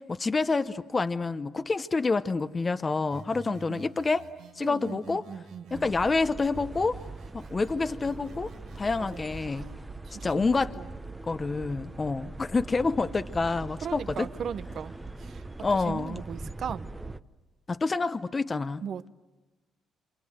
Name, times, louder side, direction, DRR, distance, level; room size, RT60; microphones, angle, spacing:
voice 1, 0.0-4.3 4.5-5.2 5.7-7.0 7.3-8.5 8.8-9.7 10.2-10.7 11.3-14.3 15.6-16.2 17.7-18.8, left 3 dB, 30° left, 0.9 m, -28 dB
sound 1, 3.1-6.1 6.5-9.5, right 4 dB, 85° right, 2.7 m, -50 dB
voice 2, 3.5-3.8 4.6-5.9 9.0-9.2 9.5-9.8 10.0-10.9 13.8-14.9 15.2-15.4 15.9-16.9 18.8-19.1, right 8 dB, 60° right, 0.9 m, -38 dB
sound 2, 5.7-17.2, right 2 dB, 15° right, 0.9 m, -42 dB
27.5 x 27.0 x 7.9 m
cardioid pair, 90°, 0 cm